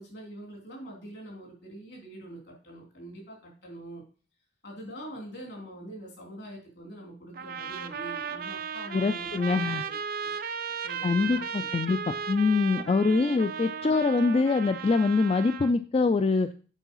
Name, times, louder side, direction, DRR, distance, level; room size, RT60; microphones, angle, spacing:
voice 1, 0.0-4.0 4.6-10.4 10.8-11.7 13.0-13.3 13.8-14.0, right 1 dB, 65° left, -1 dB, 3.5 m, -44 dB
sound 1, 7.3-15.7, right 7 dB, 55° right, 0.5 m, -35 dB
voice 2, 8.9-9.8 11.0-16.5, left 4 dB, 35° left, 11 dB, 0.3 m, -24 dB
8.2 x 4.7 x 5.5 m, 0.40 s
head